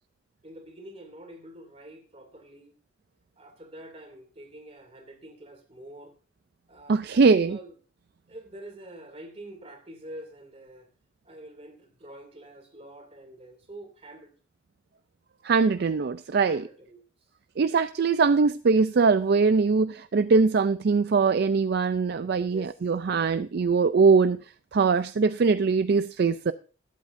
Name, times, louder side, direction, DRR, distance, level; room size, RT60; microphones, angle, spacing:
voice 1, 0.4-2.7 3.4-6.1 6.7-7.7 8.3-10.9 11.2-14.3 16.4-17.0 17.7-17.8 22.4-22.8, right 1 dB, 35° right, 2.6 m, -46 dB
voice 2, 6.9-7.6 15.4-16.6 17.6-24.4 24.7-26.5, right 4 dB, 60° right, 0.4 m, -22 dB
20.5 x 8.4 x 2.6 m
head